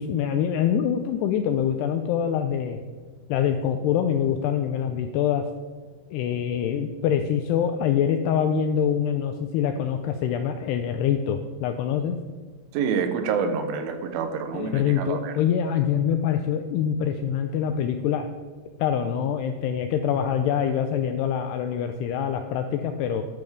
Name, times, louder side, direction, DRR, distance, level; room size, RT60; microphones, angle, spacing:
voice 1, 0.0-2.8 3.3-5.5 6.1-12.2 14.5-18.3 18.8-23.2, left 8 dB, 85° left, 7 dB, 2.3 m, -25 dB
voice 2, 12.7-15.4, right 6 dB, 90° right, 7 dB, 3.5 m, -27 dB
13.0 x 11.0 x 3.5 m, 1.5 s
omnidirectional pair, 5.4 m